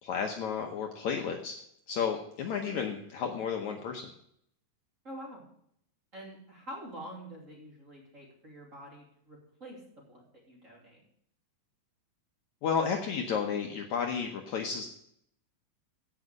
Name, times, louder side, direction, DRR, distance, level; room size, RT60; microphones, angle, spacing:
voice 1, 0.0-1.5 1.9-4.1 12.6-14.9, left 6 dB, 70° left, 2 dB, 2.0 m, -32 dB
voice 2, 5.0-5.4 6.1-9.8 10.1-11.0, equal, 25° right, -3 dB, 2.9 m, -46 dB
16.0 x 5.7 x 5.2 m, 0.69 s
omnidirectional pair, 4.1 m